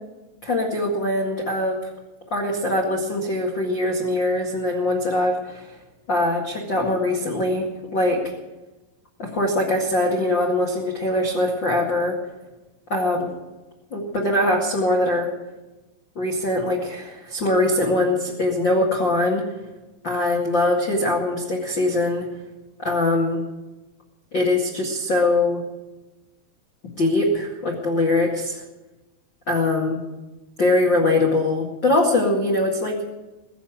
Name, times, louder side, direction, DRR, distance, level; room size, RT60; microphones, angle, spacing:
voice 1, 0.4-1.8 2.3-5.7 6.1-7.7 7.9-8.2 9.2-12.2 12.9-13.3 13.9-15.3 16.1-19.4 20.0-22.3 22.8-23.4 24.3-25.6 27.0-28.6 29.5-30.0 30.6-33.0, left 2 dB, 70° left, -2 dB, 1.1 m, -22 dB
21.5 x 7.2 x 9.0 m, 1.1 s
omnidirectional pair, 5.8 m